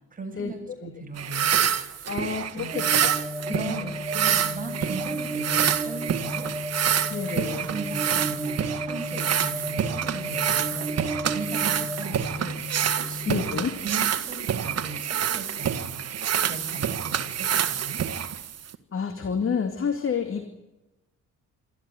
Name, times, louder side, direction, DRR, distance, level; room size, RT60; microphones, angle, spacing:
voice 1, 0.1-2.2 2.5-2.9 3.5-6.5 7.3-10.9 11.3-12.6 13.0-13.5 13.8-16.0 16.4-18.1, right 3 dB, 30° right, 2 dB, 7.4 m, -38 dB
sound 1, 1.2-18.7, right 9 dB, 55° right, 1.7 m, -27 dB
voice 2, 2.1-3.1 3.5-3.9 7.1-7.6 13.3-13.7 18.9-20.5, left 6 dB, 45° left, 6 dB, 2.5 m, -29 dB
sound 2, 2.7-13.3, equal, 10° right, 6.6 m, -33 dB
27.0 x 13.5 x 9.7 m, 1.0 s
cardioid pair, 90°, 30 cm